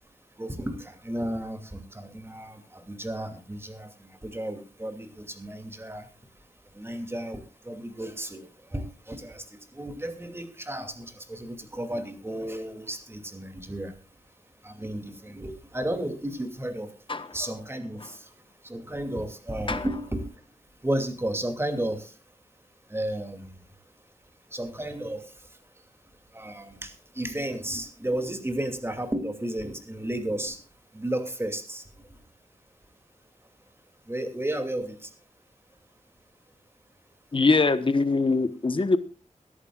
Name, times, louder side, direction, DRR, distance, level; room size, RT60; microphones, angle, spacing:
voice 1, 0.4-6.1 6.7-14.0 14.6-16.9 17.3-18.3 18.6-20.3 20.8-22.1 22.9-23.6 24.5-25.3 26.3-30.6 30.9-31.8 34.1-35.1, right 1 dB, 20° right, 7 dB, 2.6 m, -33 dB
voice 2, 37.3-39.0, left 3 dB, 40° left, 11 dB, 1.1 m, -22 dB
22.0 x 11.5 x 2.4 m, 0.34 s
wide cardioid pair, 85°, 13 cm